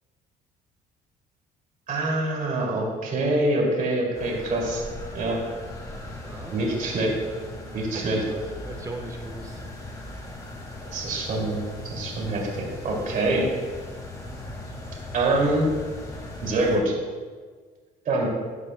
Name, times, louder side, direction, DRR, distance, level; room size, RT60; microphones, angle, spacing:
voice 1, 1.9-4.8 5.1-5.4 6.5-7.1 7.7-8.2 10.9-11.6 11.9-12.5 12.8-13.4 15.1-15.7 16.4-16.9 18.1-18.3, right 2 dB, 50° right, -2 dB, 2.5 m, -25 dB
sound 1, 4.1-16.8, left 2 dB, 20° left, 1.9 m, -38 dB
voice 2, 6.2-6.6 7.9-9.6 12.9-13.2, right 2 dB, 20° right, 4 dB, 1.1 m, -40 dB
13.0 x 8.1 x 2.2 m, 1.5 s
cardioid pair, 110°, 17 cm